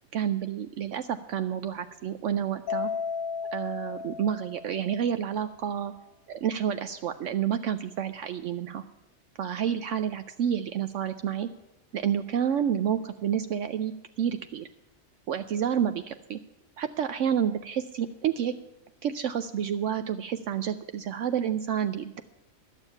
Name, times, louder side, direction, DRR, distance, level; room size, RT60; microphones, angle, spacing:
voice 1, 0.1-2.9 3.5-5.9 6.3-8.8 9.4-11.5 11.9-14.7 15.3-16.4 16.8-18.5 19.0-22.2, right 9 dB, 70° right, 10 dB, 0.9 m, -29 dB
Mallet percussion, 2.7-5.1, left 6 dB, 80° left, 1.1 m, -34 dB
11.5 x 7.2 x 9.1 m, 0.93 s
omnidirectional pair, 1.4 m